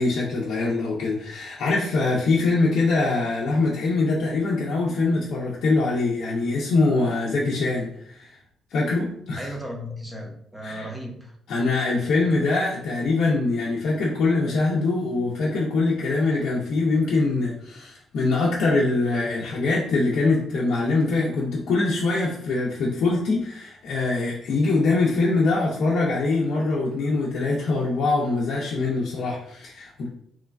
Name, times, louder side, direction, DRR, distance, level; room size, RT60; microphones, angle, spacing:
voice 1, 0.0-8.4 8.7-9.5 10.6-10.9 11.5-30.1, left 3 dB, 70° left, -5 dB, 0.5 m, -23 dB
voice 2, 9.4-11.4, equal, 10° right, 0 dB, 0.7 m, -35 dB
3.1 x 2.2 x 2.3 m, 0.68 s
cardioid pair, 90°, 0 cm